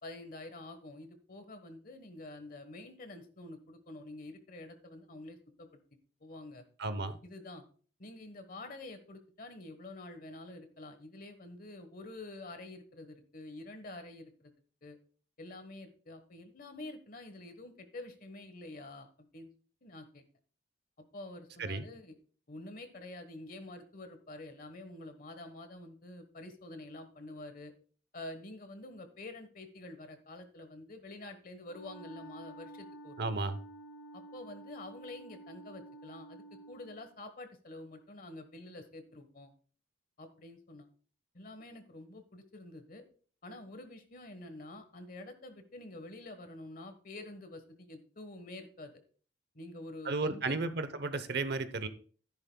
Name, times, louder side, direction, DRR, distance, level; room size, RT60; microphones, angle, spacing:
voice 1, 0.0-5.8 6.2-6.6 7.2-7.6 8.0-14.5 14.8-15.0 15.4-19.5 19.8-20.2 21.1-22.1 22.5-27.7 28.1-33.5 34.1-39.5 40.2-40.9 41.3-43.0 43.4-48.9 49.5-50.6, left 2 dB, 45° left, 9 dB, 1.3 m, -48 dB
voice 2, 6.8-7.2 21.6-21.9 33.2-33.6 50.0-51.9, right 3 dB, 55° right, 12 dB, 0.8 m, -33 dB
Wind instrument woodwind instrument, 31.6-37.0, right 1 dB, 85° left, 3.1 m, -50 dB
13.5 x 10.5 x 2.3 m, 0.43 s
head